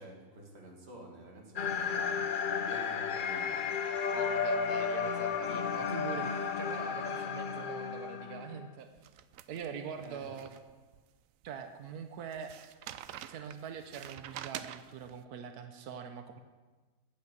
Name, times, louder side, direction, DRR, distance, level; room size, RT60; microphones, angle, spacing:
voice 1, 0.0-2.2 2.6-3.7 10.0-10.4, right 2 dB, 45° right, 1 dB, 2.1 m, -49 dB
sound 1, 1.6-8.7, left 6 dB, 60° left, 0.5 m, -33 dB
voice 2, 4.1-8.9 9.5-10.5 11.4-12.5 13.3-16.4, right 7 dB, 90° right, 7 dB, 1.3 m, -43 dB
sound 2, 9.0-11.0 11.4-11.5 12.3-15.2, right 11 dB, 70° right, 0.9 m, -46 dB
10.0 x 8.6 x 7.8 m, 1.3 s
omnidirectional pair, 1.6 m